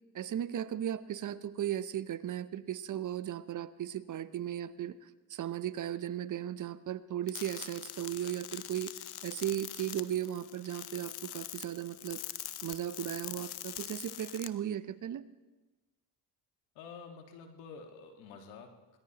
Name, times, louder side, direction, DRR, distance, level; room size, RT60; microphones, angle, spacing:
voice 1, 0.1-5.0 5.3-8.9 9.2-12.2 12.6-15.2, right 11 dB, 40° right, 15 dB, 0.7 m, -36 dB
sound 1, 7.3-14.5, left 13 dB, 55° left, 0.8 m, -44 dB
voice 2, 16.8-19.0, left 5 dB, 85° left, 4 dB, 1.8 m, -49 dB
21.5 x 19.0 x 2.9 m, 1.2 s
supercardioid pair, 70°, 47 cm